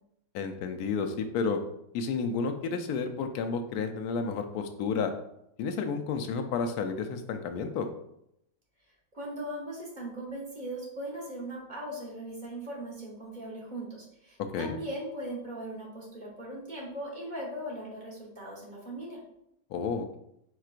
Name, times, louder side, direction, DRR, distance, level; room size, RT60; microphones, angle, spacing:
voice 1, 0.3-1.6 1.9-5.1 5.6-7.9 14.5-14.8 19.7-20.2, left 5 dB, 85° left, 6 dB, 1.1 m, -31 dB
voice 2, 9.1-19.2, right 1 dB, 35° right, -4 dB, 1.1 m, -39 dB
4.5 x 4.5 x 2.4 m, 0.78 s
omnidirectional pair, 1.6 m